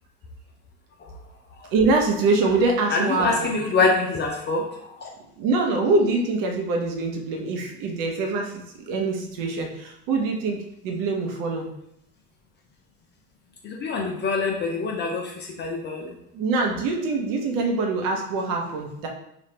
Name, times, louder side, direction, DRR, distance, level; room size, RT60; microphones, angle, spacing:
voice 1, 1.7-3.5 5.4-11.7 16.3-19.1, right 3 dB, 45° right, 1 dB, 0.8 m, -24 dB
voice 2, 2.9-5.1 13.6-16.1, left 4 dB, 25° left, 0 dB, 0.4 m, -25 dB
3.2 x 2.4 x 3.2 m, 0.77 s
figure-of-eight pair, 70°, 45 cm